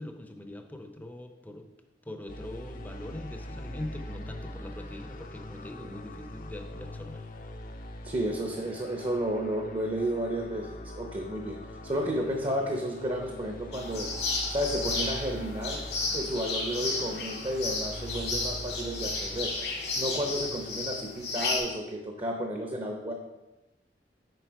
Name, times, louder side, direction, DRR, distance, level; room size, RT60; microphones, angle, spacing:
voice 1, 0.0-1.7 2.0-7.2, left 1 dB, 10° left, 6 dB, 0.6 m, -42 dB
sound 1, 2.3-21.8, left 1 dB, 50° left, 0.6 m, -43 dB
voice 2, 8.0-11.6 11.8-14.1 14.5-15.8 16.1-19.5 20.0-23.1, equal, 30° right, 2 dB, 0.8 m, -32 dB
sound 2, 13.7-21.6, left 3 dB, 90° left, 2.3 m, -33 dB
8.1 x 5.3 x 4.7 m, 1.0 s
head